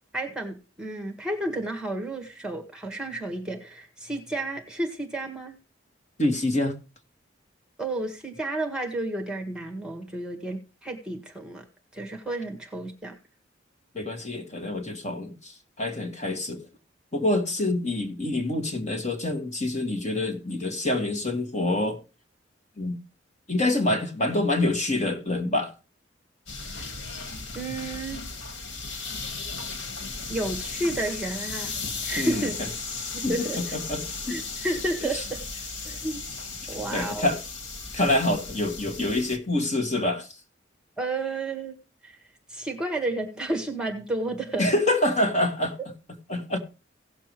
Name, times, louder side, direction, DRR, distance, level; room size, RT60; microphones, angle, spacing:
voice 1, 0.1-5.6 7.8-11.6 11.9-13.2 26.8-26.9 27.6-28.2 30.3-31.8 32.0-32.6 33.1-33.8 34.3-35.4 35.8-36.2 36.7-37.3 41.0-41.8 42.0-42.2 42.5-44.7, right 2 dB, 5° right, 1.6 m, -31 dB
voice 2, 6.2-6.7 13.9-16.7 17.1-22.0 22.8-23.0 23.5-25.7 32.2-32.7 33.2-34.4 35.1-35.2 36.9-37.4 37.9-40.3 44.6-45.8 46.3-46.6, left 1 dB, 35° left, 1.9 m, -26 dB
sound 1, 26.5-39.4, left 4 dB, 85° left, 1.8 m, -36 dB
17.0 x 6.9 x 3.2 m
head